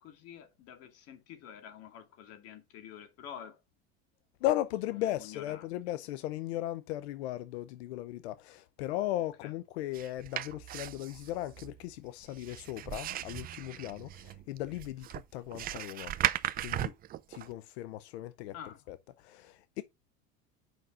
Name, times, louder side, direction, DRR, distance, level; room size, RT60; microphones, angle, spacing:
voice 1, 0.0-3.6 5.0-5.6 9.4-9.5 18.5-18.8, left 9 dB, 50° left, 2.3 m, -48 dB
voice 2, 4.4-16.1 16.6-16.9 17.3-18.5 18.9-19.8, left 14 dB, 90° left, 0.7 m, -37 dB
sound 1, 9.9-17.5, right 12 dB, 30° right, 0.5 m, -37 dB
8.2 x 5.6 x 3.7 m
supercardioid pair, 135°, 31 cm